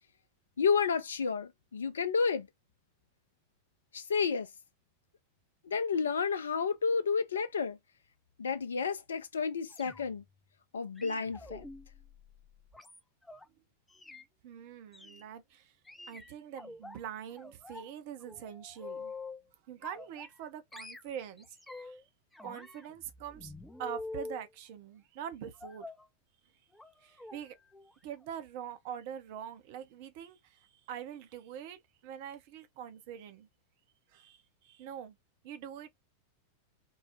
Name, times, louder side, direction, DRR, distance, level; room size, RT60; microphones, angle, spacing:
voice 1, 0.6-2.5 3.9-4.5 5.6-7.8 8.4-10.2 10.7-11.6, left 5 dB, 70° left, 0.4 m, -31 dB
sound 1, 9.7-10.3 11.0-13.4 13.9-14.2 14.9-15.2 15.9-17.0 17.4-17.9 18.2-19.4 19.8-20.5 20.7-22.0 22.3-24.4 25.6-26.0 26.7-26.9 27.2-27.4 27.7-27.9 28.2-28.3, left 3 dB, 5° left, 0.3 m, -46 dB
voice 2, 14.4-15.7 16.1-19.1 19.7-22.0 22.4-23.5 23.8-25.9 27.0-27.6 28.0-33.5 34.1-35.2 35.4-35.9, right 9 dB, 50° right, 0.6 m, -44 dB
3.8 x 2.0 x 2.6 m
figure-of-eight pair, 90°, 0 cm